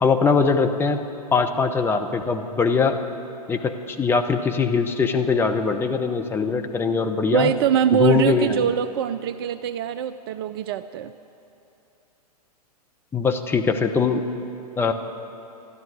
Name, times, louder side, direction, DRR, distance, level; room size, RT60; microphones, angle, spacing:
voice 1, 0.0-3.0 3.5-7.5 7.9-8.7 13.1-14.2 14.8-14.9, left 5 dB, 10° left, 4 dB, 0.8 m, -22 dB
voice 2, 7.3-11.1, right 8 dB, 40° right, 12 dB, 0.4 m, -23 dB
12.0 x 12.0 x 9.4 m, 2.9 s
figure-of-eight pair, 105°, 20 cm